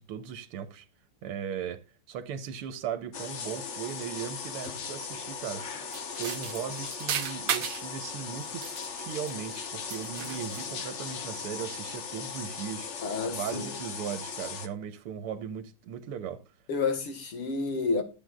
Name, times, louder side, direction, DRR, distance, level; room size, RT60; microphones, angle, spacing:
voice 1, 0.1-0.9 1.2-5.7 6.2-8.7 9.0-12.9 13.3-16.4, right 8 dB, 85° right, 1.9 m, -37 dB
sound 1, 3.1-14.7, left 6 dB, 50° left, 0.9 m, -38 dB
sound 2, 5.9-7.9 8.4-9.6 9.9-10.8, right 8 dB, 60° right, 1.5 m, -35 dB
voice 2, 13.0-13.7 16.7-18.0, left 4 dB, 75° left, 2.8 m, -30 dB
14.0 x 7.8 x 2.5 m
omnidirectional pair, 2.4 m